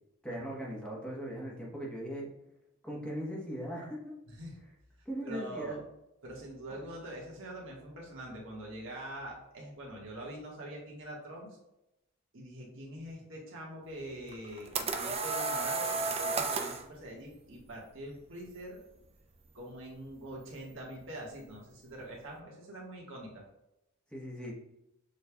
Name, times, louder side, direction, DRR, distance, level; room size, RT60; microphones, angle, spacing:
voice 1, 0.2-2.3 2.8-4.1 5.0-5.8 24.1-24.5, equal, 5° left, -4 dB, 1.0 m, -39 dB
voice 2, 4.3-4.6 5.2-5.8 6.2-11.6 12.3-18.8 19.5-23.4, right 1 dB, 70° right, -3 dB, 1.4 m, -44 dB
sound 1, 14.3-16.8, right 4 dB, 30° right, 0.4 m, -32 dB
6.6 x 3.2 x 2.3 m, 0.87 s
head